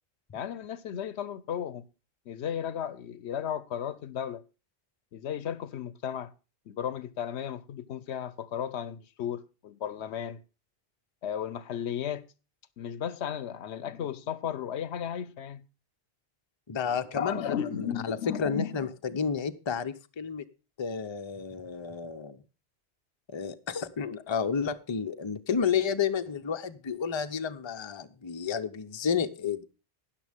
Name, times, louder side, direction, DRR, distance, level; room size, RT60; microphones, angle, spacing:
voice 1, 0.3-1.8 2.3-4.4 5.1-6.3 6.7-10.4 11.2-12.2 12.8-15.6 16.9-18.8, left 9 dB, 75° left, 1.0 m, -34 dB
voice 2, 16.7-20.4 20.8-22.4 23.3-29.6, left 6 dB, 30° left, 0.6 m, -31 dB
13.0 x 9.9 x 3.5 m
omnidirectional pair, 1.1 m